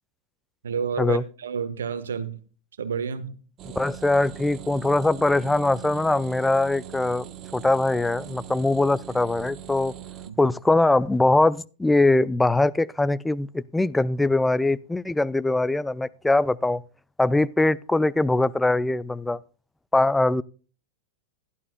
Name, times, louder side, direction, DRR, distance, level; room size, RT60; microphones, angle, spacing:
voice 1, 0.6-2.3 2.8-3.3 10.3-10.5, right 6 dB, 65° right, 1.2 m, -30 dB
sound 1, 3.6-10.3, right 11 dB, 30° right, 0.9 m, -41 dB
voice 2, 3.7-7.3 7.5-9.9 10.4-16.8 17.2-19.4 19.9-20.4, left 2 dB, 5° left, 0.4 m, -22 dB
16.5 x 11.0 x 2.2 m
figure-of-eight pair, 90°, 0 cm